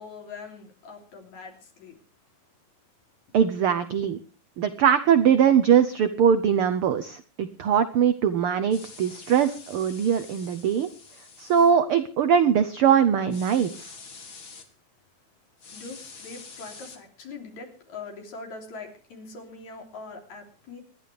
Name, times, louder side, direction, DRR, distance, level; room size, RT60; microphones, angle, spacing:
voice 1, 0.0-2.0 15.7-20.8, left 4 dB, 65° left, 2 dB, 4.5 m, -42 dB
voice 2, 3.3-4.2 4.6-10.9 11.4-13.9, right 8 dB, 90° right, 11 dB, 1.2 m, -21 dB
sound 1, 8.7-11.7 13.3-14.7 15.6-17.0, left 4 dB, 35° left, 2.0 m, -46 dB
26.5 x 11.0 x 3.4 m, 0.39 s
omnidirectional pair, 3.6 m